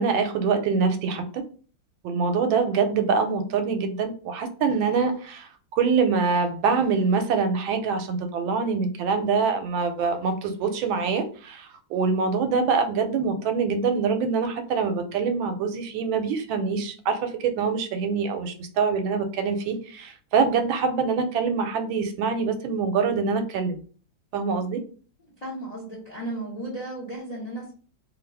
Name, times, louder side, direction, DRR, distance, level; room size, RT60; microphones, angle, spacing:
voice 1, 0.0-1.4 2.0-5.5 5.8-23.8 24.3-24.8, right 5 dB, 85° right, 8 dB, 1.3 m, -24 dB
voice 2, 25.2-27.7, right 1 dB, 55° left, -3 dB, 0.4 m, -35 dB
3.1 x 2.4 x 3.2 m, 0.41 s
omnidirectional pair, 2.1 m